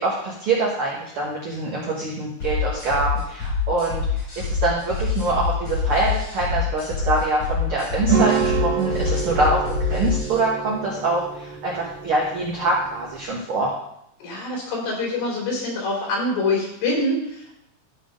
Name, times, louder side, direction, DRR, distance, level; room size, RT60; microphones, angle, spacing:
voice 1, 0.0-9.6 9.9-13.7, right 2 dB, 55° right, -4 dB, 1.7 m, -24 dB
sound 1, 2.4-10.4, left 5 dB, 55° left, 5.2 m, -25 dB
sound 2, 8.1-13.3, right 6 dB, 70° right, 2.8 m, -27 dB
voice 2, 14.2-17.6, left 2 dB, 85° left, -1 dB, 4.5 m, -25 dB
13.0 x 4.5 x 5.3 m, 0.79 s
omnidirectional pair, 4.0 m